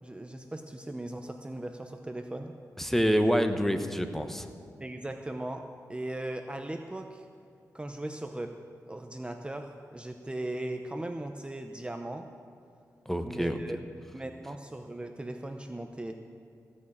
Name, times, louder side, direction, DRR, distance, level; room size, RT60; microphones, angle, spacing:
voice 1, 0.0-2.5 4.8-5.6 5.9-7.3 7.7-8.5 8.9-12.3 13.2-13.8 14.1-16.2, right 1 dB, 15° right, 5 dB, 0.7 m, -38 dB
voice 2, 2.8-4.5 13.1-13.6, equal, 5° left, 7 dB, 1.0 m, -27 dB
15.5 x 6.5 x 8.6 m, 2.3 s
cardioid pair, 60°, 6 cm